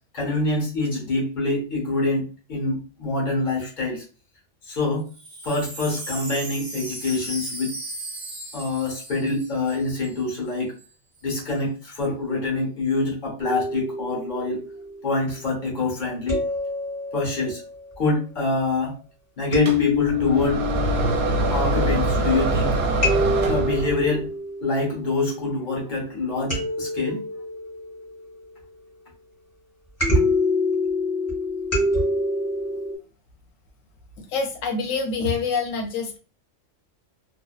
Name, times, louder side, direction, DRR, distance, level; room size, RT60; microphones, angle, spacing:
voice 1, 0.1-4.0 4.6-5.1 5.4-7.7 8.5-10.7 11.2-14.6 15.0-16.4 17.1-17.6 18.0-19.0 19.4-20.6 21.5-22.8 23.5-24.3 24.6-27.2, left 3 dB, 40° left, -2 dB, 1.1 m, -25 dB
Wind chime, 5.0-10.2 10.5-10.6 10.8-11.2, right 2 dB, 35° right, 0.3 m, -37 dB
sound 1, 13.4-15.5 16.3-17.8 19.5-22.4 23.0-25.6 26.5-28.7 30.0-32.9, left 2 dB, 15° left, 0.9 m, -26 dB
sound 2, 19.7-24.1, right 2 dB, 60° right, 0.8 m, -24 dB
voice 2, 34.2-36.2, left 4 dB, 85° left, 2 dB, 1.0 m, -26 dB
2.6 x 2.1 x 2.3 m, 0.34 s
omnidirectional pair, 1.3 m